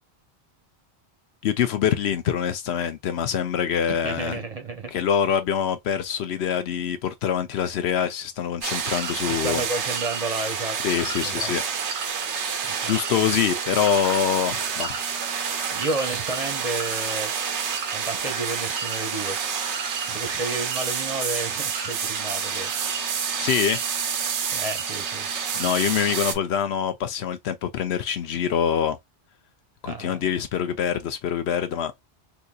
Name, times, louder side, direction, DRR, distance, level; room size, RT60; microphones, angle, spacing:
voice 1, 1.4-4.4 4.9-9.6 10.8-11.6 12.4-12.5 12.9-15.0 23.4-23.8 25.5-29.0 29.8-31.9, left 8 dB, 70° left, 0.8 m, -25 dB
voice 2, 3.9-4.9 9.3-10.8 11.2-11.5 12.6-12.9 15.7-17.3 17.9-19.4 20.0-22.7 24.5-25.3 29.8-30.3, right 2 dB, 35° right, 0.9 m, -31 dB
sound 1, 8.6-26.3, right 6 dB, 85° right, 1.0 m, -28 dB
3.9 x 2.7 x 2.3 m
omnidirectional pair, 1.1 m